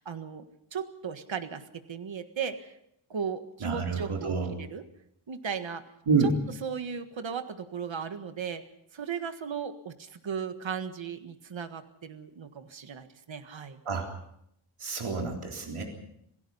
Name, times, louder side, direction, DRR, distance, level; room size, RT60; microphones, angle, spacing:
voice 1, 0.0-2.8 3.1-4.9 5.3-5.8 6.2-6.3 6.6-8.6 8.9-13.8, right 6 dB, 65° right, 8 dB, 1.7 m, -36 dB
voice 2, 3.6-4.5 6.1-6.3 13.9-14.1 14.8-15.8, right 4 dB, 85° right, 1 dB, 3.8 m, -28 dB
27.5 x 17.0 x 5.6 m, 0.76 s
wide cardioid pair, 105°, 49 cm